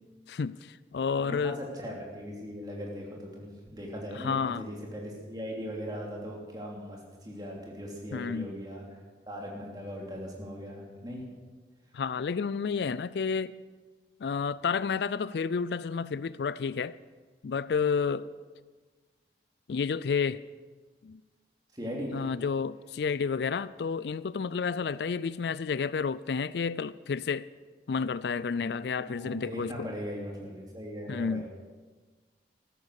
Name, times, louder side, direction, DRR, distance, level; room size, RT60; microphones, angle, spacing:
voice 1, 0.3-1.6 4.1-4.6 8.1-8.5 11.9-13.6 14.2-17.0 17.4-18.3 19.7-20.4 21.0-21.2 22.1-27.5 27.9-29.9 31.1-31.5, left 5 dB, 70° left, 18 dB, 0.4 m, -30 dB
voice 2, 1.2-9.0 9.3-11.2 21.7-22.2 29.1-31.5, equal, 20° right, -1 dB, 3.0 m, -39 dB
13.5 x 13.5 x 6.5 m, 1.4 s
head